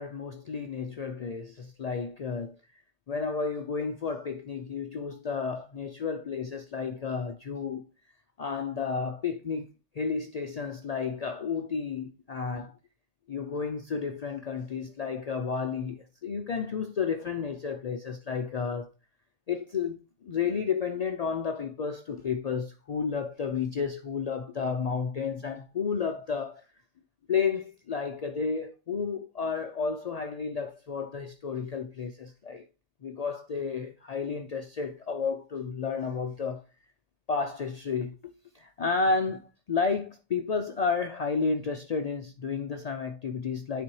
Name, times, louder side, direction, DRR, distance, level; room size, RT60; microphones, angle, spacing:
voice 1, 0.0-2.5 3.1-7.8 8.4-9.7 10.0-12.7 13.3-18.9 19.5-26.6 27.3-32.7 33.0-36.6 37.3-43.8, left 5 dB, 80° left, 0.3 m, -32 dB
9.6 x 4.1 x 3.1 m
omnidirectional pair, 1.3 m